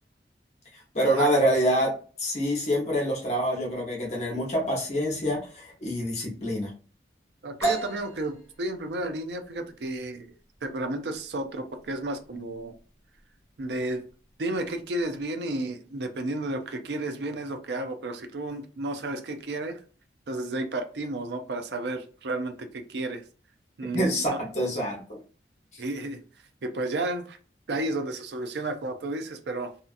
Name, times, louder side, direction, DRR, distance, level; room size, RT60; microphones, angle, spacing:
voice 1, 0.7-6.7 23.9-25.2 25.7-25.8, equal, 40° left, -2 dB, 0.9 m, -26 dB
voice 2, 7.4-10.3 10.6-12.7 13.6-14.0 14.4-19.8 20.3-23.2 23.8-24.1 25.8-26.2 26.6-27.4 27.7-29.7, right 2 dB, 75° right, 7 dB, 0.5 m, -32 dB
sound 1, 7.6-15.2, right 2 dB, 15° left, 1.0 m, -37 dB
2.7 x 2.4 x 2.5 m, 0.39 s
head